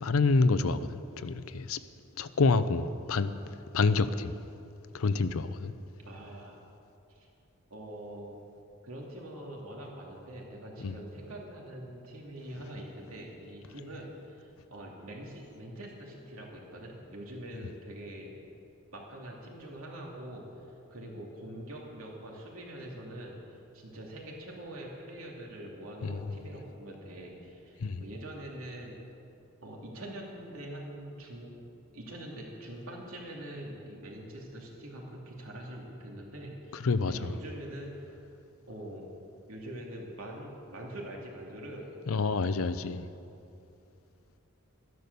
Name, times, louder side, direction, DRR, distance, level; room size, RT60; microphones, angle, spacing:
voice 1, 0.0-1.8 2.2-3.3 3.7-4.3 4.9-5.7 10.8-11.0 26.0-26.2 27.8-28.0 36.8-37.3 42.1-43.1, left 4 dB, 80° left, 0.6 m, -27 dB
voice 2, 6.0-6.6 7.1-7.3 7.7-8.4 8.8-18.4 18.9-20.5 20.9-23.4 23.7-29.0 29.6-31.6 31.9-37.9 38.7-39.1 39.5-41.9, right 1 dB, 80° right, 2.7 m, -44 dB
13.5 x 11.0 x 6.8 m
head